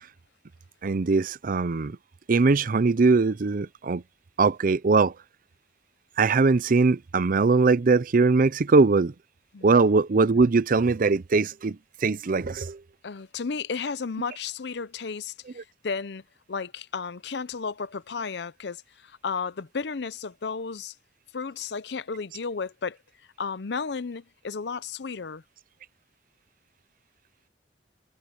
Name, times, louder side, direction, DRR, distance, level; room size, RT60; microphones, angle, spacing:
voice 1, 0.8-2.0 2.3-4.0 4.4-5.1 6.2-9.1 9.6-12.8, right 4 dB, 50° right, 0.5 m, -21 dB
voice 2, 13.0-16.2 16.5-20.9 21.3-23.0 23.4-25.4, left 5 dB, 70° left, 0.6 m, -33 dB
head